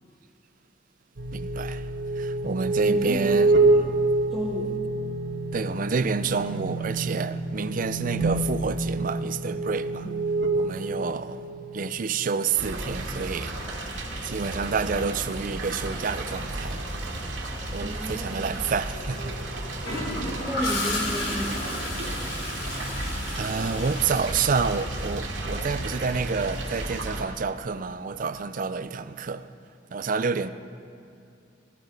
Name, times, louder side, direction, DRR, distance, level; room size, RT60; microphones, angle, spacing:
sound 1, 1.2-12.5, right 2 dB, 70° right, 1.5 m, -27 dB
voice 1, 1.3-1.9 2.2-3.5 5.5-10.1 10.5-11.5 11.7-13.6 14.2-16.9 17.7-19.4 23.3-29.5 29.9-30.5, right 5 dB, 45° right, 0.5 m, -28 dB
voice 2, 2.8-3.4 4.2-4.8 10.0-10.2 10.9-11.1 17.8-18.3 20.4-22.1, equal, ahead, 1.1 m, -33 dB
sound 2, 12.6-27.2, right 1 dB, 90° right, 2.2 m, -33 dB
Gurgling / Toilet flush, 19.8-25.6 27.6-27.8, left 1 dB, 85° left, 3.4 m, -33 dB
17.0 x 14.0 x 5.2 m
head